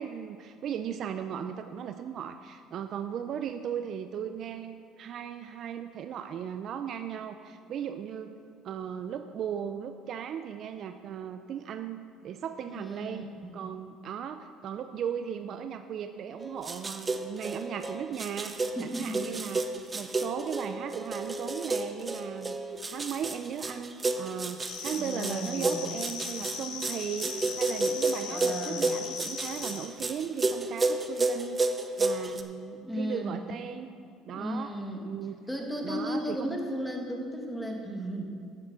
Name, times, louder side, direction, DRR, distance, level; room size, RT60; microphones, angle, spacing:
voice 1, 0.0-8.3 8.6-13.3 13.5-22.6 22.9-33.9 34.2-35.4 35.8-36.6, right 8 dB, 55° right, 9 dB, 0.5 m, -37 dB
voice 2, 12.7-13.5 18.8-19.2 19.9-20.0 24.9-25.9 28.3-29.0 32.8-33.4 34.3-35.0 35.5-38.3, equal, 5° left, 1 dB, 1.9 m, -35 dB
sound 1, 16.4-32.4, right 3 dB, 25° right, 0.8 m, -31 dB
sound 2, 24.7-29.9, left 7 dB, 80° left, 1.1 m, -39 dB
10.5 x 7.3 x 6.3 m, 2.3 s
supercardioid pair, 90°, 0 cm